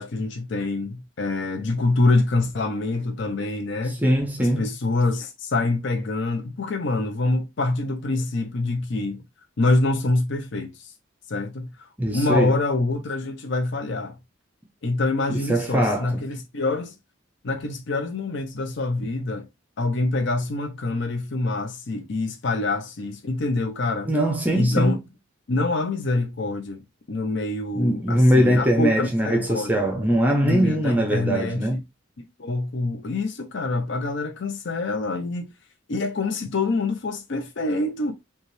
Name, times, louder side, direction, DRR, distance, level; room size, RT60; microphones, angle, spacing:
voice 1, 0.0-4.0 4.4-9.2 9.6-10.9 11.3-14.2 14.8-16.9 17.4-19.5 19.8-24.1 24.5-25.0 25.5-26.8 27.1-29.9 30.4-31.8 32.4-35.5 35.9-38.1, left 2 dB, 65° left, 0.6 m, -25 dB
voice 2, 3.9-4.7 12.0-12.5 15.3-16.2 24.1-25.0 27.7-31.8, equal, 10° right, 0.6 m, -21 dB
5.3 x 2.3 x 3.2 m
head